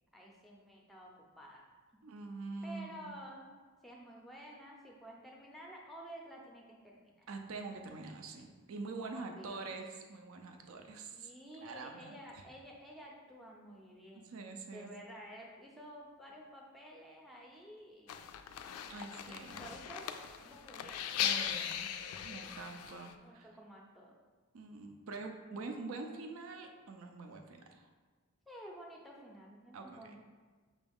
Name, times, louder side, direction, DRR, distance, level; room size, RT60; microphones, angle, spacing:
voice 1, 0.1-1.6 1.9-2.0 2.6-3.5 3.8-7.3 9.0-9.7 11.1-14.3 14.7-18.2 19.3-20.0 20.4-21.1 23.2-24.2 28.5-30.2, equal, ahead, -2 dB, 0.5 m, -52 dB
voice 2, 2.0-3.2 7.3-12.4 14.1-14.9 18.9-19.6 21.2-21.9 22.2-23.5 24.5-27.9 29.7-30.2, right 3 dB, 70° right, 4 dB, 0.4 m, -45 dB
sound 1, 18.1-23.1, left 9 dB, 90° left, 0.3 m, -39 dB
6.0 x 2.3 x 3.4 m, 1.4 s
head